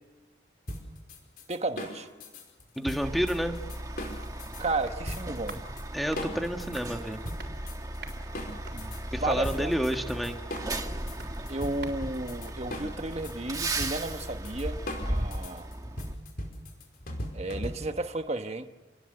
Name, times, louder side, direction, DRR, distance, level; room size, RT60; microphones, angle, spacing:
sound 1, 0.7-4.6 5.1-5.8 6.2-9.0 9.4-18.1, left 1 dB, 50° left, 5.0 m, -39 dB
voice 1, 1.5-2.1 4.6-5.6 8.5-9.7 11.5-15.7 17.3-18.6, right 2 dB, 35° right, 7 dB, 1.3 m, -33 dB
voice 2, 2.7-3.6 5.9-7.2 9.1-10.4, equal, ahead, 4 dB, 1.6 m, -29 dB
Truck, 3.0-16.1, right 1 dB, 20° right, 1.6 m, -36 dB
sound 2, 4.2-13.4 13.7-13.8, right 4 dB, 55° right, 3.8 m, -50 dB
29.5 x 20.5 x 8.0 m, 1.2 s
head